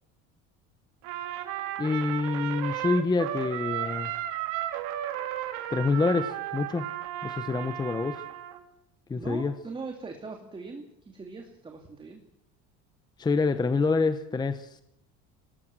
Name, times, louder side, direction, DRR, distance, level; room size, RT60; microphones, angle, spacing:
Trumpet, 1.0-8.6, right 12 dB, 75° right, 3.3 m, -34 dB
voice 1, 1.8-4.1 5.7-6.9 7.2-8.2 9.1-9.5 13.2-14.8, left 4 dB, 15° left, 11 dB, 0.9 m, -27 dB
voice 2, 9.2-12.2, right 4 dB, 15° right, 3 dB, 2.6 m, -40 dB
24.0 x 19.0 x 7.7 m, 0.77 s
cardioid pair, 145°, 30 cm